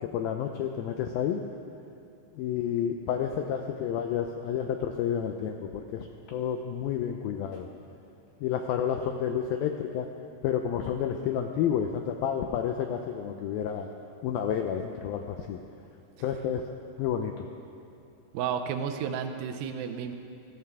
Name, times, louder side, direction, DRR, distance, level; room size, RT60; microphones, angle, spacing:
voice 1, 0.0-1.4 2.3-7.7 8.4-10.1 10.4-13.9 14.2-15.6 16.2-16.6 17.0-17.5, left 8 dB, 90° left, 5 dB, 2.1 m, -30 dB
voice 2, 18.3-20.1, right 7 dB, 85° right, 6 dB, 2.0 m, -32 dB
20.5 x 14.5 x 3.6 m, 2.7 s
omnidirectional pair, 4.9 m